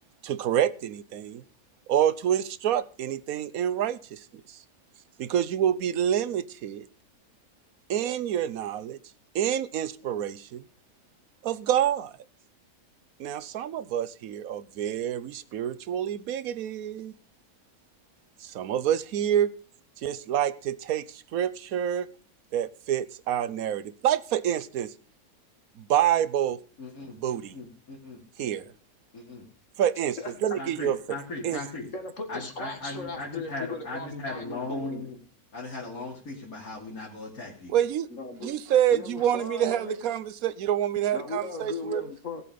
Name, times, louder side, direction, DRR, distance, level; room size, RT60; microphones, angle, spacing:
voice 1, 0.2-1.4 1.9-4.2 5.2-6.9 7.9-9.0 9.3-10.6 11.4-12.1 13.2-17.1 18.4-19.5 20.0-22.1 22.5-24.9 25.8-26.6 27.1-27.5 28.4-28.6 29.8-31.2 31.4-31.6 37.7-38.1 38.4-42.0, right 10 dB, 75° right, 1.2 m, -27 dB
voice 2, 26.8-28.6 29.1-29.4 30.6-31.9 32.3-35.1 35.5-37.7, left 2 dB, 80° left, 3.3 m, -38 dB
voice 3, 30.2-30.6 31.9-35.1 38.1-38.5 38.9-40.1 41.1-42.4, left 3 dB, 60° left, 2.4 m, -37 dB
17.5 x 7.7 x 5.2 m
omnidirectional pair, 1.5 m